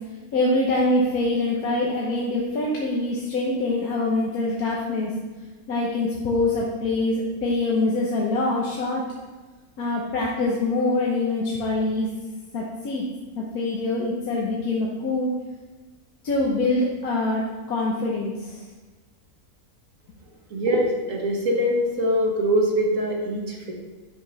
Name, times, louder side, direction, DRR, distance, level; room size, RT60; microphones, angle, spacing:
voice 1, 0.3-5.1 5.7-9.0 9.8-12.1 12.5-13.0 13.3-15.3 16.2-17.4 17.7-18.6, left 2 dB, 75° left, -4 dB, 1.6 m, -24 dB
voice 2, 20.5-23.7, equal, 60° right, 0 dB, 1.8 m, -23 dB
9.1 x 4.9 x 5.5 m, 1.3 s
omnidirectional pair, 1.6 m